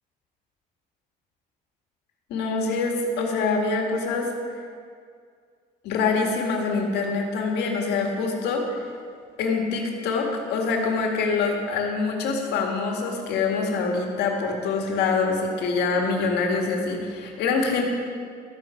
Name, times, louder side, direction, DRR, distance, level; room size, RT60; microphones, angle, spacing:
voice 1, 2.3-4.3 5.8-8.6 9.4-17.9, left 4 dB, 85° left, 1 dB, 1.8 m, -25 dB
12.5 x 8.3 x 4.9 m, 2.2 s
cardioid pair, 110°, 17 cm